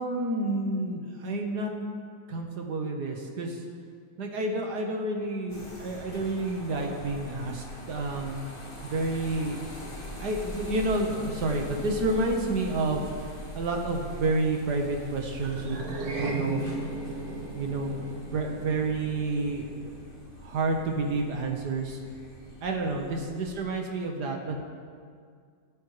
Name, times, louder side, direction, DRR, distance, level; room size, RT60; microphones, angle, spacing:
voice 1, 0.0-1.7 2.3-3.6 4.2-8.4 8.8-9.6 10.2-13.1 13.5-16.7 17.6-18.0 18.3-19.9 20.4-22.0 22.6-24.6, right 2 dB, 70° right, 2 dB, 1.9 m, -29 dB
sound 1, 5.5-23.5, equal, 30° left, 2.0 m, -43 dB
sound 2, 15.4-20.0, right 2 dB, 90° right, 1.9 m, -36 dB
24.0 x 8.6 x 3.3 m, 2.1 s
omnidirectional pair, 1.9 m